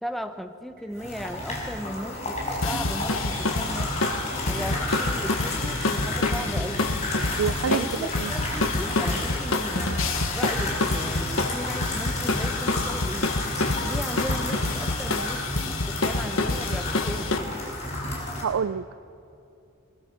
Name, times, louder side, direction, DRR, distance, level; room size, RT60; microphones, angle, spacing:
voice 1, 0.0-3.9 4.5-6.9 7.7-9.9 10.3-13.4 13.8-17.6, equal, ahead, 7 dB, 0.9 m, -36 dB
sound 1, 0.8-8.8, right 2 dB, 45° right, 6.2 m, -47 dB
sound 2, 0.9-18.4, left 1 dB, 35° left, 5.3 m, -32 dB
sound 3, 2.6-17.4, left 2 dB, 70° left, 1.5 m, -28 dB
voice 2, 7.4-8.3 18.4-19.0, right 6 dB, 70° right, 18 dB, 0.4 m, -27 dB
22.0 x 21.0 x 5.9 m, 2.6 s
head